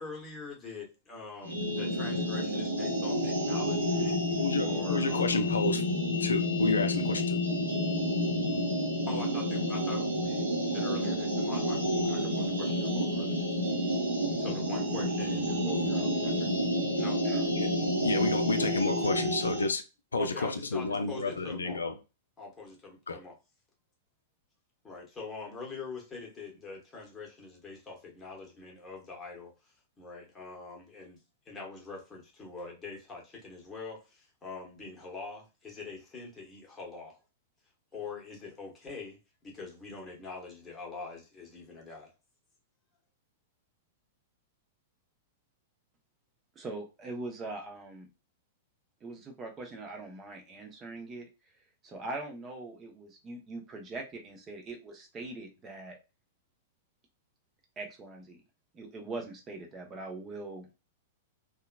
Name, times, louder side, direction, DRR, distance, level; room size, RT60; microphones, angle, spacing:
voice 1, 0.0-4.2 4.7-5.6 9.1-13.4 14.4-16.5 17.0-17.2 20.2-21.8 22.4-23.4 24.8-31.2 31.5-37.2 37.9-42.1, left 4 dB, 15° left, -1 dB, 1.0 m, -44 dB
sound 1, 1.4-19.7, equal, 85° right, 0.8 m, -29 dB
voice 2, 4.4-5.8 6.2-7.4 17.6-19.8 20.1-22.0 23.1-23.2, left 3 dB, 75° left, 8 dB, 0.4 m, -30 dB
voice 3, 46.6-48.1 49.0-51.3 51.8-56.0 57.8-58.4 58.7-60.8, right 2 dB, 25° right, 2 dB, 0.8 m, -42 dB
2.9 x 2.3 x 2.2 m, 0.29 s
figure-of-eight pair, 100°, 0 cm